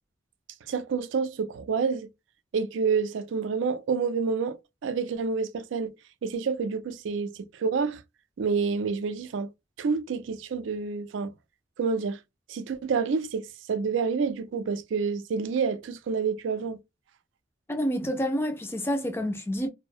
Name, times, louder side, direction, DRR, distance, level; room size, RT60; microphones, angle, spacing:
voice 1, 0.7-2.1 2.5-5.9 6.2-8.0 8.4-9.5 9.8-11.3 11.8-12.2 12.5-16.8, right 5 dB, 75° right, 0.4 m, -28 dB
voice 2, 17.7-19.7, equal, 10° left, 0.3 m, -28 dB
2.6 x 2.0 x 2.3 m
head